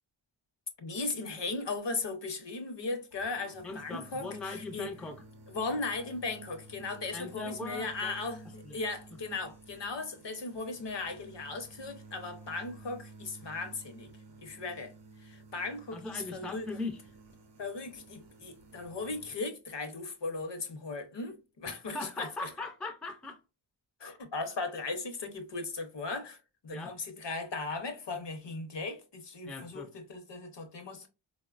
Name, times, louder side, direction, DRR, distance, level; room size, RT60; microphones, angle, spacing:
voice 1, 0.8-4.9 5.5-14.1 14.4-14.9 15.2-16.7 17.6-22.5 24.0-26.4 26.6-31.1, left 3 dB, 60° left, 0.7 m, -37 dB
sound 1, 3.1-19.3, right 2 dB, 60° right, 0.6 m, -53 dB
voice 2, 3.6-5.2 7.1-8.2 8.6-8.8 15.9-17.0 21.7-23.4 26.7-26.9 29.5-29.9, left 3 dB, ahead, 0.3 m, -40 dB
3.8 x 2.1 x 2.3 m
wide cardioid pair, 70°, 48 cm